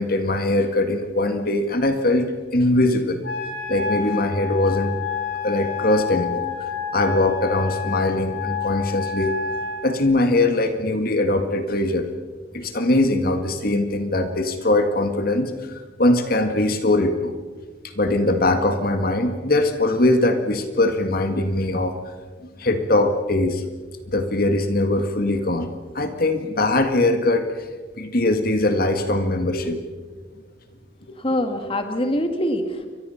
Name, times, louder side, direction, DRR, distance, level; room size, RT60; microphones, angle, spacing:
voice 1, 0.0-3.2 3.7-4.9 5.4-6.4 6.9-9.4 9.8-12.1 12.5-17.4 17.8-21.9 22.4-23.6 24.1-25.7 25.9-27.5 28.0-29.8 31.1-31.4, left 2 dB, 50° left, 7 dB, 1.9 m, -21 dB
Wind instrument woodwind instrument, 3.2-9.8, left 6 dB, 90° left, 6.7 m, -29 dB
voice 2, 31.2-32.9, left 1 dB, 30° left, 6 dB, 1.9 m, -24 dB
29.0 x 24.0 x 5.8 m, 1.4 s
head